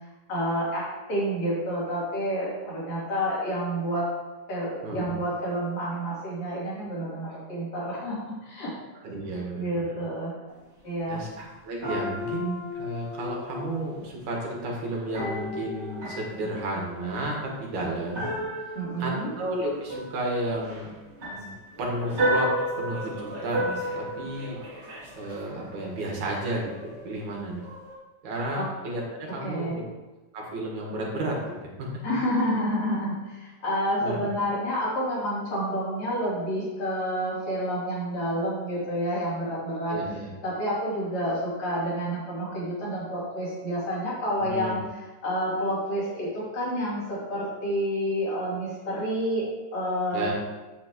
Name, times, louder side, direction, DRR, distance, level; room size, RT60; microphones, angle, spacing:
voice 1, 0.3-4.1 4.5-8.7 9.5-10.3 10.8-11.2 18.7-19.3 28.5-28.6 29.4-29.8 32.0-40.0 40.4-44.8 45.2-49.4 49.7-50.3, equal, 60° left, -9 dB, 4.5 m, -29 dB
voice 2, 9.0-10.0 11.1-18.3 18.6-20.9 21.3-21.5 21.8-22.5 22.8-24.6 25.1-27.6 28.2-29.8 30.3-31.4 31.6-31.9 34.0-34.3 39.9-40.3 44.4-44.8 50.1-50.3, right 1 dB, 65° right, -2 dB, 2.8 m, -32 dB
sound 1, 10.5-10.6 11.8-14.1 15.1-17.4 18.1-25.8 26.3-27.3 27.6-27.9, equal, 25° right, 2.3 m, -33 dB
8.9 x 8.2 x 3.0 m, 1.2 s
omnidirectional pair, 3.7 m